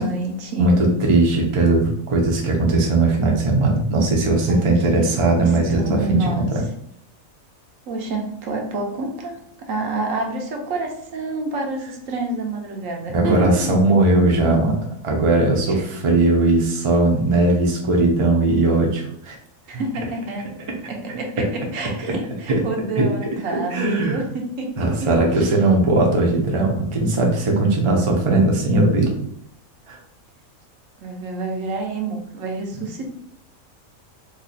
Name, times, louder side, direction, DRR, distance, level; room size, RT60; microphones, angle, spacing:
voice 1, 0.0-0.7 4.5-5.1 5.5-6.5 7.9-9.4 9.7-13.7 15.7-15.9 19.7-20.4 20.9-24.9 25.3-25.5 31.0-33.0, right 2 dB, 75° right, 2 dB, 1.1 m, -28 dB
voice 2, 0.6-6.6 13.1-19.3 21.4-21.5 22.5-22.6 23.0-23.1 23.7-24.2 24.8-29.1 29.9-30.0, right 2 dB, 35° right, 0 dB, 0.5 m, -18 dB
3.0 x 2.4 x 4.0 m, 0.72 s
omnidirectional pair, 1.4 m